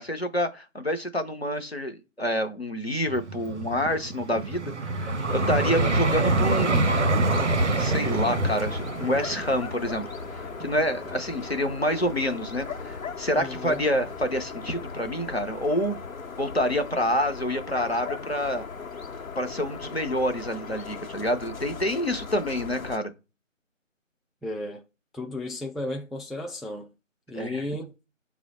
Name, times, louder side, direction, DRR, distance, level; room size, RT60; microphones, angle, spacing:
voice 1, 0.0-6.9 7.7-10.1 10.4-16.0 16.4-18.6 19.4-23.1 27.3-27.7, equal, 50° left, 0.5 m, -28 dB
Vehicle, 3.1-12.2 12.8-13.0, right 2 dB, 60° right, 0.5 m, -26 dB
sound 1, 5.2-23.0, left 5 dB, 85° left, 0.8 m, -38 dB
voice 2, 13.4-13.8 24.4-24.8 25.1-26.9 27.3-27.9, left 1 dB, ahead, 0.3 m, -34 dB
6.0 x 2.0 x 2.9 m
figure-of-eight pair, 180°, 40 cm